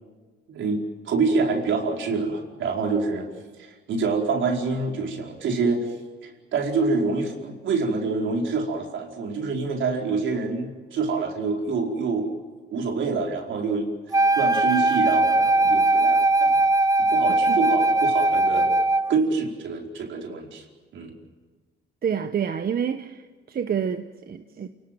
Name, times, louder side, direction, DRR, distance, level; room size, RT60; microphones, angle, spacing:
voice 1, 0.5-3.3 3.6-5.9 6.2-12.3 12.7-16.6 17.0-18.7 19.1-20.6 20.9-21.1, right 4 dB, 75° right, 4.7 m, -26 dB
Wind instrument woodwind instrument, 14.1-19.2, right 2 dB, 20° right, 1.0 m, -20 dB
voice 2, 22.0-24.7, right 8 dB, 50° right, 1.1 m, -28 dB
29.0 x 18.0 x 9.2 m
cardioid pair, 90°, 20 cm